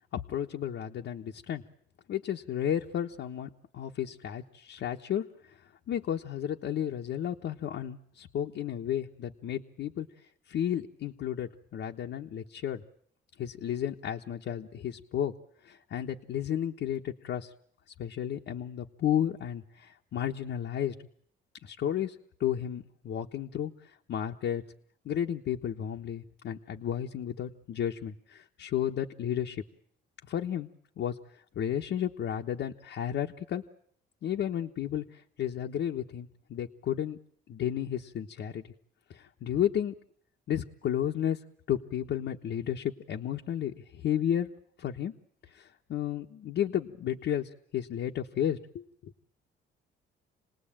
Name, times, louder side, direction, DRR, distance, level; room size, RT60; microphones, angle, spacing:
voice 1, 0.1-1.6 2.1-5.6 5.9-10.1 10.5-12.8 13.4-15.3 15.6-17.5 18.0-20.9 21.6-22.1 22.4-23.7 24.1-24.6 25.0-29.6 30.3-30.7 31.0-31.2 31.5-33.6 34.2-37.2 37.5-38.6 39.1-39.9 40.5-41.4 41.7-44.5 44.8-45.1 45.5-49.1, left 10 dB, 70° left, 1 dB, 1.3 m, -32 dB
28.0 x 19.0 x 8.9 m, 0.67 s
cardioid pair, 90°, 20 cm